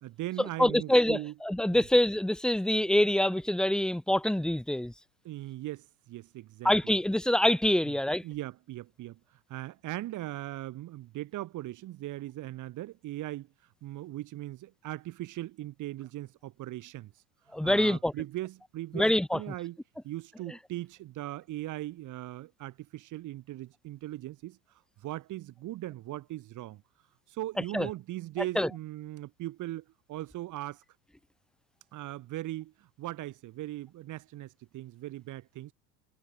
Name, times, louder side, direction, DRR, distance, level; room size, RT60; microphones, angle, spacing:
voice 1, 0.0-1.3 1.7-1.8 5.2-6.9 7.9-8.0 8.2-13.5 13.8-17.1 17.6-19.8 20.0-24.6 25.0-26.8 27.3-30.8 31.9-35.7, right 15 dB, 50° right, 2.9 m, -39 dB
voice 2, 0.6-4.9 6.6-8.2 17.5-18.1 18.9-19.4 27.7-27.9 28.6-28.7, left 1 dB, ahead, 0.9 m, -25 dB
hypercardioid pair, 95°, 39 cm